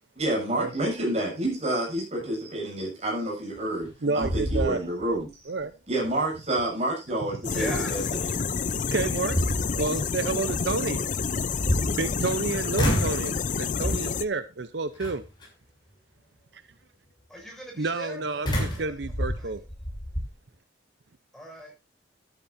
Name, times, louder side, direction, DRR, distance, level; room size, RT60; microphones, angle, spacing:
voice 1, 0.2-5.3 5.9-8.3, right 1 dB, 35° right, -1 dB, 7.5 m, -29 dB
sound 1, 3.6-3.9 4.2-5.2 5.6-5.7 8.4-8.5 9.0-10.0 11.3-12.4 12.7-13.3 13.8-14.2 15.0-15.4 18.4-20.3, equal, 25° left, 7.2 m, -29 dB
voice 2, 4.0-4.8 5.5-5.7 8.7-9.4 9.8-11.0 12.0-15.2 16.5-16.6 17.8-19.6, right 3 dB, 65° right, 13 dB, 0.7 m, -29 dB
sound 2, 7.4-14.3, left 5 dB, 40° left, 0.5 m, -29 dB
voice 3, 7.5-8.2 17.3-19.5 21.3-21.7, equal, ahead, -1 dB, 6.5 m, -40 dB
13.5 x 13.0 x 2.6 m, 0.26 s
head